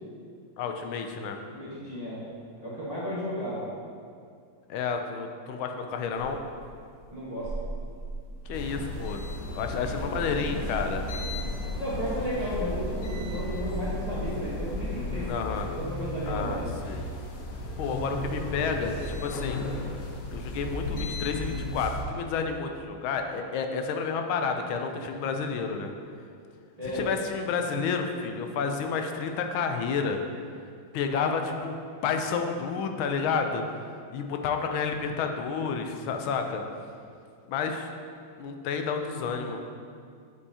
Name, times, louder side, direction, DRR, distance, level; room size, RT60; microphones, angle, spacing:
voice 1, 0.6-1.4 4.7-6.4 8.5-9.2 9.5-11.0 15.3-15.7 16.3-17.0 17.8-19.6 20.3-25.9 26.9-30.2 30.9-31.8 32.0-33.6 34.1-36.6 37.5-37.9 38.4-39.6, left 5 dB, 90° left, 5 dB, 1.4 m, -30 dB
voice 2, 1.5-2.2 2.6-3.6 7.1-7.5 9.8-10.4 11.8-16.8 26.8-27.0 39.2-39.4, equal, 25° right, -9 dB, 0.9 m, -34 dB
sound 1, 6.2-15.3, equal, 10° left, 0.8 m, -37 dB
sound 2, 8.5-22.0, left 1 dB, 60° left, 1.0 m, -35 dB
8.1 x 5.5 x 2.8 m, 2.2 s
omnidirectional pair, 2.2 m